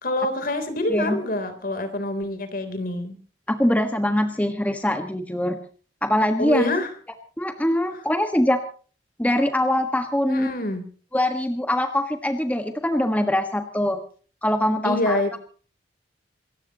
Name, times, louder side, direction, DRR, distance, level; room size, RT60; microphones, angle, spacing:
voice 1, 0.0-3.2 6.4-6.9 10.3-10.9 14.8-15.4, left 1 dB, 50° left, 8 dB, 3.6 m, -26 dB
voice 2, 0.9-1.2 3.5-5.6 6.0-6.7 7.4-8.6 9.2-10.5 11.1-14.0 14.4-15.4, left 1 dB, 10° left, 5 dB, 1.5 m, -23 dB
27.5 x 15.5 x 3.0 m, 0.40 s
head